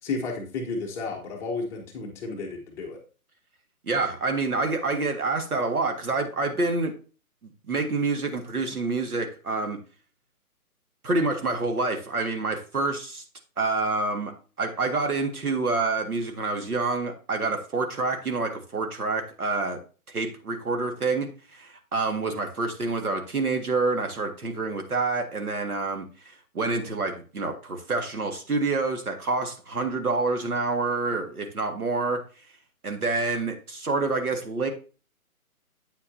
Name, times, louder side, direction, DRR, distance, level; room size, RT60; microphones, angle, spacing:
voice 1, 0.0-3.0, left 3 dB, 5° left, -2 dB, 0.8 m, -32 dB
voice 2, 3.8-6.9 7.7-9.8 11.0-13.2 13.6-14.3 14.6-19.8 20.1-32.2 32.8-34.7, right 3 dB, 75° right, 4 dB, 1.9 m, -27 dB
8.5 x 8.3 x 2.7 m, 0.35 s
figure-of-eight pair, 140°, 44 cm